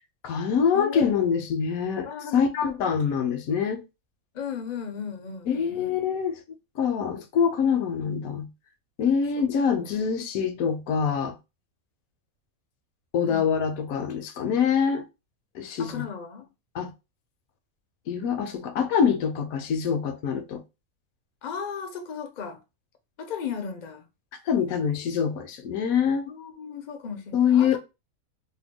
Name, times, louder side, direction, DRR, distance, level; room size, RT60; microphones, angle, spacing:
voice 1, 0.2-3.8 5.5-6.4 6.8-8.5 9.0-11.4 13.1-15.1 15.5-16.0 16.7-16.9 18.1-20.6 24.5-26.2 27.3-27.8, left 7 dB, 75° left, 1.0 m, -25 dB
voice 2, 0.7-1.3 2.0-2.6 4.3-5.9 9.4-9.7 13.3-13.6 15.8-16.5 21.4-22.6 23.2-24.1 26.3-27.8, left 7 dB, 55° left, 0.5 m, -36 dB
2.8 x 2.2 x 3.5 m
omnidirectional pair, 1.6 m